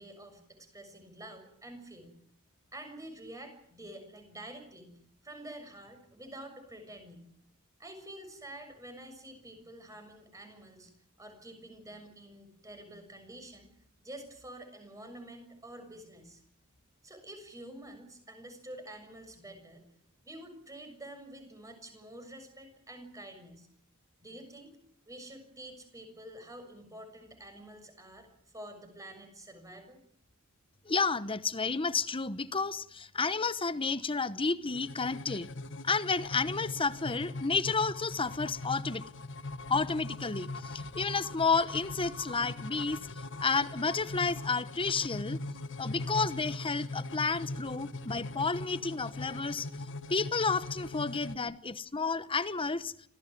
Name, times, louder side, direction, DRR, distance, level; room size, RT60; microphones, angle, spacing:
voice 1, 0.0-2.2 2.7-4.9 5.2-7.3 7.8-10.9 11.2-13.7 14.0-16.4 17.0-19.8 20.2-23.7 24.2-24.8 25.1-28.3 28.5-30.0, right 1 dB, 15° right, 6.8 m, -48 dB
voice 2, 30.8-35.5 35.8-39.0 39.7-43.0 43.4-45.4 45.8-49.7 50.1-52.9, left 4 dB, 25° left, 1.0 m, -31 dB
sound 1, 34.7-51.4, left 2 dB, 60° left, 1.5 m, -41 dB
26.5 x 17.0 x 9.3 m
head